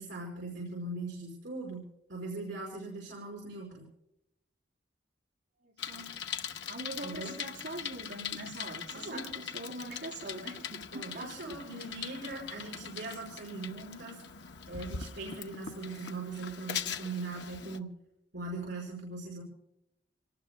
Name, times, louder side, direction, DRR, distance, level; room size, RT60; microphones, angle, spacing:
voice 1, 0.0-3.8 7.0-7.3 8.9-9.3 10.9-14.2 14.7-17.9 18.3-19.4, right 3 dB, 75° right, -1 dB, 5.1 m, -40 dB
voice 2, 5.6-6.1 6.7-11.9, right 1 dB, 60° right, -4 dB, 7.7 m, -43 dB
Bicycle, 5.8-17.8, left 7 dB, 65° left, 0.9 m, -41 dB
28.0 x 19.0 x 2.3 m, 0.85 s
head